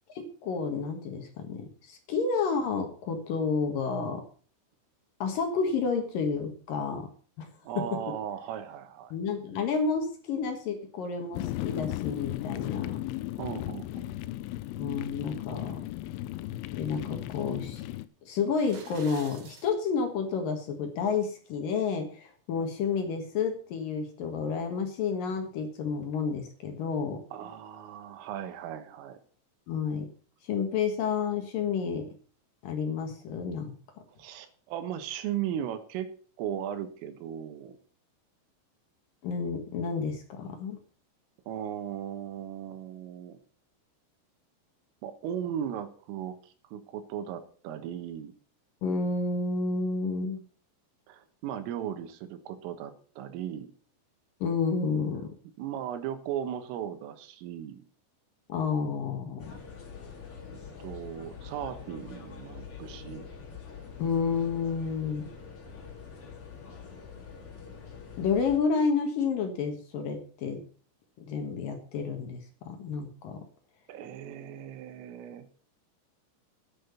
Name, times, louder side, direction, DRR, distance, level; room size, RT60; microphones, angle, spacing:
voice 1, 0.1-4.2 5.2-7.1 7.4-7.5 9.1-13.0 14.8-15.9 16.7-17.8 18.2-27.2 29.7-30.1 30.4-32.1 32.6-33.7 39.2-40.8 48.8-50.4 54.4-55.3 58.5-59.5 64.0-65.3 68.2-70.6 71.2-73.4, left 5 dB, 60° left, 5 dB, 2.4 m, -30 dB
voice 2, 7.7-9.1 13.4-14.2 27.3-29.2 34.2-37.8 41.5-43.4 45.0-48.3 51.1-53.7 55.6-57.8 60.8-63.3 73.9-75.5, right 9 dB, 80° right, 9 dB, 3.8 m, -37 dB
sound 1, 11.3-18.1, left 15 dB, 80° left, 3.0 m, -36 dB
sound 2, 18.5-19.7, right 5 dB, 65° right, 1.5 m, -48 dB
sound 3, 59.4-68.6, left 6 dB, 40° left, 2.2 m, -45 dB
10.5 x 8.8 x 7.0 m, 0.44 s
omnidirectional pair, 5.8 m